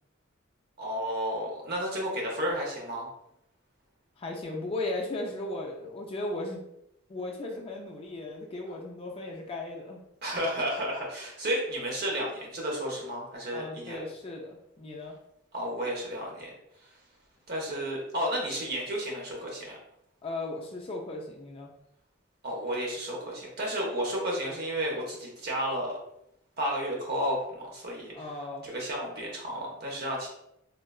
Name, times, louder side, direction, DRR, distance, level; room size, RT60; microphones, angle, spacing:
voice 1, 0.8-3.1 10.2-14.0 15.5-16.5 17.5-19.8 22.4-26.0 26.6-28.3 28.6-30.3, equal, 50° right, -2 dB, 0.8 m, -32 dB
voice 2, 4.2-6.6 7.1-10.0 13.5-15.2 20.2-21.7 28.1-28.7, left 2 dB, 25° left, 0 dB, 0.4 m, -36 dB
3.6 x 2.2 x 2.3 m, 0.79 s
head